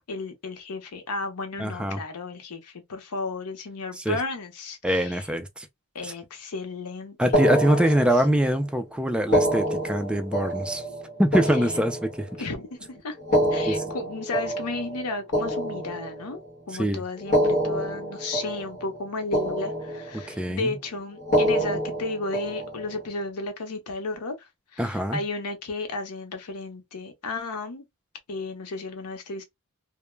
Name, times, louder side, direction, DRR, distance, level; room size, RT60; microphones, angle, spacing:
voice 1, 0.1-5.2 5.9-7.4 7.7-7.8 12.4-13.2 13.5-16.4 16.7-27.8 28.3-29.4, left 3 dB, 85° left, 0.7 m, -33 dB
voice 2, 1.6-2.0 4.0-4.2 4.8-5.7 6.0-6.1 7.2-10.8 11.2-12.3 13.7-13.8 16.8-17.0 20.3-20.8 24.8-25.2, right 1 dB, 5° right, 0.3 m, -24 dB
sound 1, 7.3-8.6 9.2-12.5 13.2-16.5 17.2-19.1 19.3-20.4 21.2-23.0, equal, 35° left, 1.0 m, -27 dB
2.1 x 2.1 x 3.1 m
head